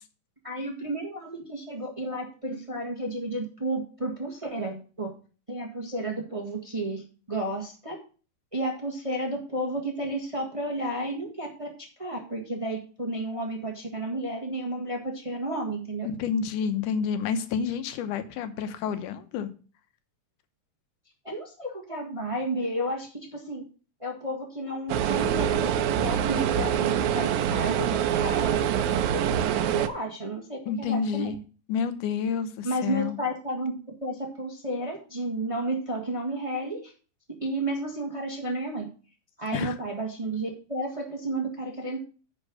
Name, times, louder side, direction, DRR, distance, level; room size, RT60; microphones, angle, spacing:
voice 1, 0.4-5.1 5.5-8.0 8.5-11.7 12.0-16.1 21.2-23.6 24.0-31.3 32.6-36.9 37.3-38.9 39.4-42.0, right 1 dB, 30° right, 1 dB, 0.5 m, -32 dB
voice 2, 16.0-19.5 30.7-31.4 31.7-33.2 39.5-39.8, left 6 dB, 80° left, 10 dB, 2.4 m, -29 dB
sound 1, 24.9-29.9, right 9 dB, 80° right, 2.0 m, -25 dB
9.8 x 4.4 x 6.2 m, 0.37 s
omnidirectional pair, 3.6 m